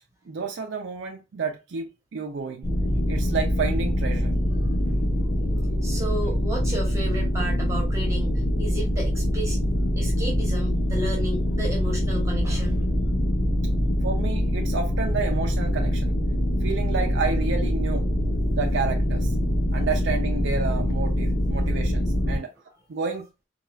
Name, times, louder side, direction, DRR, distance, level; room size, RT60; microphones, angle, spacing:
voice 1, 0.3-2.7 3.1-4.3 14.0-16.1 16.6-18.1 18.5-19.3 19.7-22.5 22.9-23.3, right 5 dB, 80° right, 0.4 m, -30 dB
sound 1, 2.6-22.4, equal, 40° left, 1.4 m, -24 dB
voice 2, 5.8-9.6 10.0-13.0, right 1 dB, 15° right, 0.8 m, -33 dB
4.3 x 2.3 x 2.2 m
head